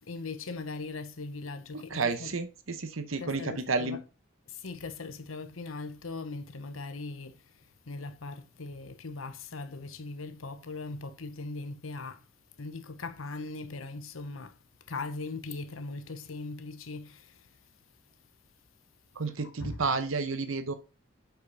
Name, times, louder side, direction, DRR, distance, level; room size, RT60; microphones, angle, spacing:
voice 1, 0.0-2.3 3.2-4.0 4.5-12.3 12.6-14.6 14.9-17.6 19.4-19.9, left 3 dB, 85° left, 1.0 m, -40 dB
voice 2, 1.9-4.0 19.2-20.7, right 4 dB, 75° right, 0.9 m, -31 dB
6.4 x 5.8 x 5.4 m
head